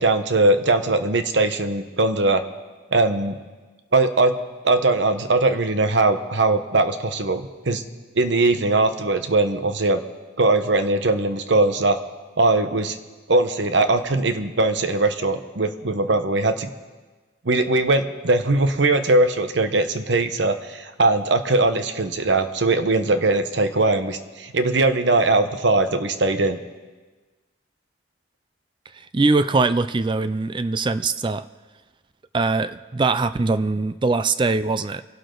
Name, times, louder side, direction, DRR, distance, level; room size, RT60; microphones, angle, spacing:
voice 1, 0.0-2.4 2.9-3.4 3.9-4.3 4.6-7.8 8.1-10.0 10.4-12.0 12.4-13.0 13.3-16.7 17.4-26.6, right 2 dB, 65° right, 9 dB, 1.0 m, -20 dB
voice 2, 29.1-31.4 32.3-35.0, right 3 dB, 25° right, 13 dB, 0.4 m, -22 dB
25.0 x 11.5 x 3.9 m, 1.3 s
head